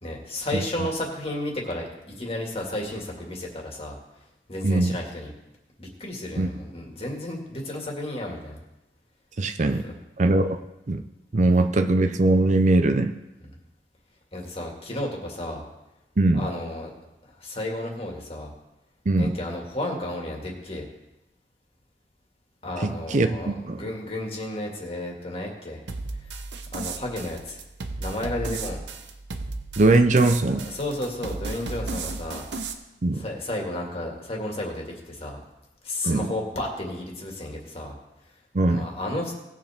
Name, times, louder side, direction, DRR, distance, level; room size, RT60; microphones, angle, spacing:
voice 1, 0.0-1.9 2.2-4.0 4.5-5.3 5.8-8.6 9.8-9.9 14.3-15.6 16.3-16.9 17.4-18.5 19.2-20.8 22.6-25.8 26.7-27.6 28.0-28.8 30.5-32.7 33.1-35.4 35.8-37.9 38.7-39.3, left 1 dB, 35° left, 0 dB, 2.1 m, -32 dB
voice 2, 4.6-5.0 6.4-6.5 9.4-9.8 10.2-10.6 10.9-11.0 11.3-13.1 16.2-16.5 19.1-19.4 22.8-23.8 29.8-30.7 33.0-33.2 36.0-36.3 38.5-38.9, right 2 dB, 45° right, 8 dB, 0.5 m, -21 dB
sound 1, 25.9-32.7, right 3 dB, 85° right, 0.9 m, -35 dB
19.0 x 7.3 x 3.6 m, 0.94 s
head